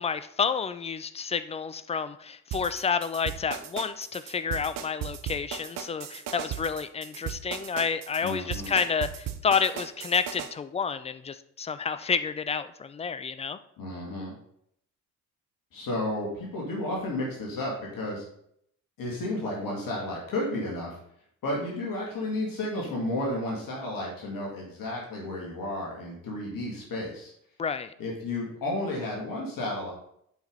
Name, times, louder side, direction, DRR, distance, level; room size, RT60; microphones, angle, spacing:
voice 1, 0.0-13.6 27.6-27.9, left 6 dB, 15° left, 13 dB, 0.3 m, -30 dB
sound 1, 2.5-10.5, right 10 dB, 50° right, 0.8 m, -36 dB
voice 2, 8.2-8.7 13.8-14.3 15.7-18.2 19.0-21.0 21.4-27.3 28.0-29.9, left 1 dB, 50° left, -3 dB, 2.5 m, -32 dB
8.0 x 4.8 x 4.0 m, 0.70 s
figure-of-eight pair, 45°, 43 cm